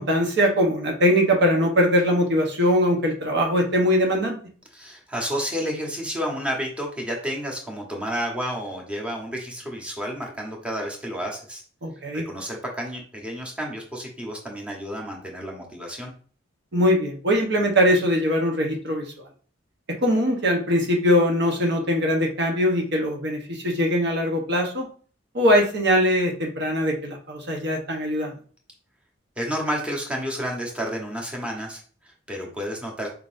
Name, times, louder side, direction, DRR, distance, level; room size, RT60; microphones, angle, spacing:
voice 1, 0.0-4.3 11.8-12.2 16.7-19.0 20.0-24.9 25.3-28.3, equal, 65° right, 1 dB, 1.0 m, -21 dB
voice 2, 4.7-11.6 12.1-16.1 29.4-33.1, equal, 5° right, -1 dB, 1.0 m, -31 dB
4.6 x 3.8 x 2.5 m, 0.42 s
head